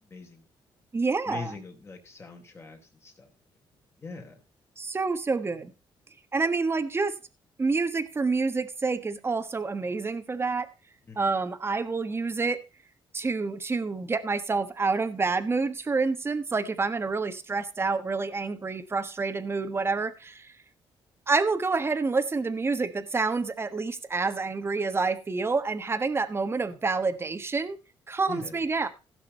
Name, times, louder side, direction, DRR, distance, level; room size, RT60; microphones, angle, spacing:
voice 1, 0.0-0.5 1.3-3.3 4.0-4.4 11.1-11.3 28.3-28.6, left 4 dB, 25° left, 3 dB, 3.9 m, -42 dB
voice 2, 0.9-1.5 4.8-5.7 6.3-7.1 7.6-10.7 11.2-12.6 13.1-20.5 21.3-27.8 28.1-28.9, right 4 dB, 25° right, 10 dB, 1.4 m, -28 dB
16.5 x 6.4 x 4.2 m, 0.30 s
cardioid pair, 105°, 10 cm